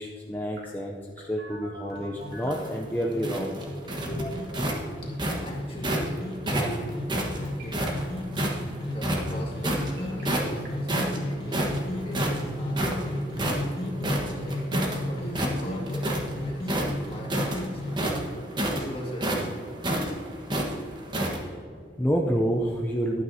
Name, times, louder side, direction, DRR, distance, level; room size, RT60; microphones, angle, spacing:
voice 1, 0.0-3.6 22.0-23.2, equal, 10° left, -1 dB, 0.5 m, -28 dB
Telephone, 0.6-2.7 3.2-4.2 6.2-7.2 7.4-7.9 9.6-10.2 10.7-10.8 11.1-16.1, right 2 dB, 65° right, 2.6 m, -49 dB
sound 1, 1.9-18.1, left 1 dB, 60° left, 1.9 m, -34 dB
sound 2, 2.3-6.1 6.5-8.6 9.0-9.9 10.2-10.6 10.9-15.0 15.3-16.3 16.6-21.4, right 1 dB, 25° right, 1.3 m, -29 dB
voice 2, 4.1-4.6 5.0-6.9 7.3-8.0 8.8-14.8 15.1-18.1 18.7-19.9 21.7-22.0, equal, 30° left, -2 dB, 2.0 m, -41 dB
12.0 x 9.3 x 2.8 m, 2.3 s
head